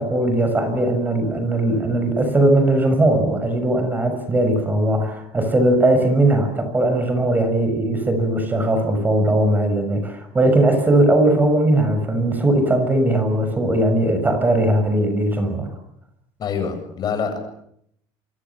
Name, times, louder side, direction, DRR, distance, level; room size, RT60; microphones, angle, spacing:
voice 1, 0.0-15.7, right 1 dB, 15° right, 7 dB, 6.5 m, -19 dB
voice 2, 16.4-17.4, left 6 dB, 40° left, 7 dB, 7.9 m, -25 dB
28.0 x 25.0 x 7.3 m, 0.72 s
cardioid pair, 130°, 10 cm